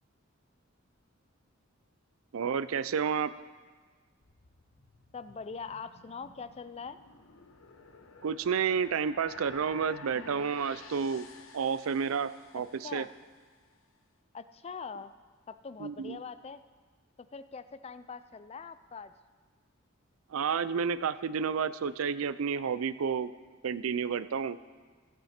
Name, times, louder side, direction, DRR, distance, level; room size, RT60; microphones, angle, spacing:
voice 1, 2.3-3.3 8.2-11.3 11.5-13.0 15.8-16.2 20.3-23.3 23.6-24.6, right 6 dB, 90° right, 15 dB, 0.4 m, -30 dB
sound 1, 4.2-13.6, left 4 dB, 75° left, 0.9 m, -53 dB
voice 2, 5.1-7.0 10.1-10.6 12.8-13.1 14.3-15.1 15.5-16.6 17.2-19.1, left 5 dB, 30° left, 13 dB, 0.4 m, -43 dB
16.0 x 8.5 x 4.3 m, 1.5 s
head